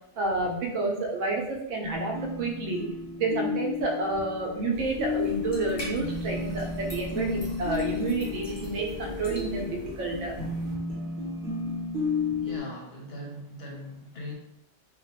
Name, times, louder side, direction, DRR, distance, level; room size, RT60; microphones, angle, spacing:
voice 1, 0.2-2.9 3.2-10.3, right 3 dB, 80° right, 1 dB, 0.9 m, -30 dB
sound 1, 1.8-12.6, left 3 dB, 55° right, 0.8 m, -33 dB
sound 2, 4.7-10.7, equal, 35° left, 0.4 m, -41 dB
voice 2, 12.4-14.4, equal, 65° left, -1 dB, 0.7 m, -40 dB
2.4 x 2.1 x 2.7 m, 0.81 s
omnidirectional pair, 1.3 m